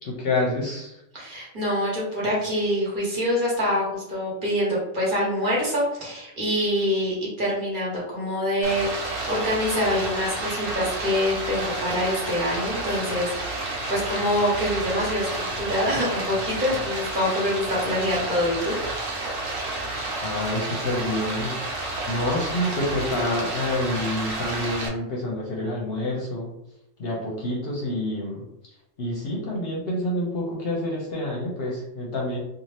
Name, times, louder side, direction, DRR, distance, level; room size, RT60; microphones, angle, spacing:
voice 1, 0.0-1.0 20.2-21.5 22.1-26.5 27.0-28.4 29.0-32.4, left 1 dB, 60° left, -2 dB, 0.8 m, -28 dB
voice 2, 1.1-18.8, left 1 dB, 45° right, -5 dB, 1.1 m, -25 dB
Stream, 8.6-24.9, right 2 dB, 80° right, 1.0 m, -30 dB
2.7 x 2.4 x 3.2 m, 0.82 s
omnidirectional pair, 1.3 m